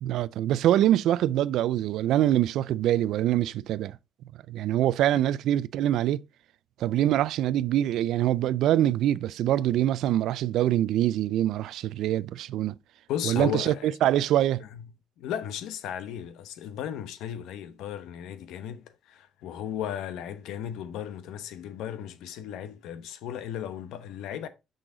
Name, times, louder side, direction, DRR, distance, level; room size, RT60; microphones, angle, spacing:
voice 1, 0.0-4.0 4.5-6.2 6.8-12.7 13.3-13.7 14.0-14.6, right 12 dB, 75° right, 0.4 m, -24 dB
voice 2, 13.1-14.0 14.6-14.9 15.2-24.5, left 10 dB, 85° left, 0.9 m, -35 dB
6.5 x 6.1 x 3.9 m
cardioid pair, 130°, 0 cm